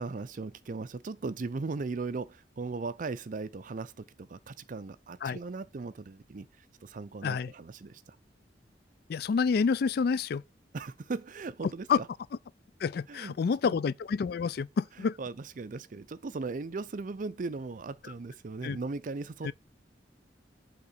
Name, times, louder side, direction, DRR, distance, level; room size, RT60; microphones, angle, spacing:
voice 1, 0.0-8.2 10.7-12.1 13.1-13.3 13.6-13.8 15.2-19.5, right 3 dB, 50° right, 0.5 m, -38 dB
voice 2, 9.1-10.4 11.9-12.0 12.8-15.2 18.0-18.1 18.6-18.8 19.4-19.5, left 5 dB, 60° left, 0.3 m, -28 dB
8.3 x 3.7 x 6.6 m
head